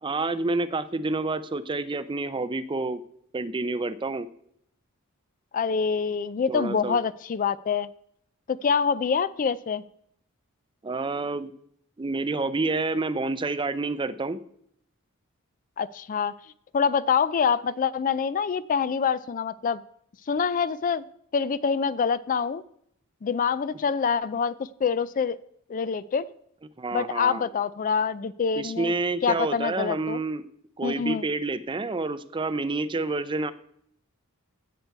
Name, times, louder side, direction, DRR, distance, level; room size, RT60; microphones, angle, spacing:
voice 1, 0.0-3.0 3.3-4.3 6.5-7.0 10.8-11.5 12.0-14.4 26.8-27.4 28.6-30.4 30.8-33.5, right 3 dB, 20° right, 14 dB, 0.5 m, -28 dB
voice 2, 5.5-7.9 8.5-9.8 15.8-16.3 16.7-19.8 20.3-21.0 21.3-22.6 23.2-24.6 24.8-25.4 25.7-26.2 26.9-28.9 29.2-30.2 30.8-31.2, left 6 dB, 40° left, 17 dB, 0.3 m, -25 dB
16.0 x 6.7 x 4.6 m, 0.71 s
head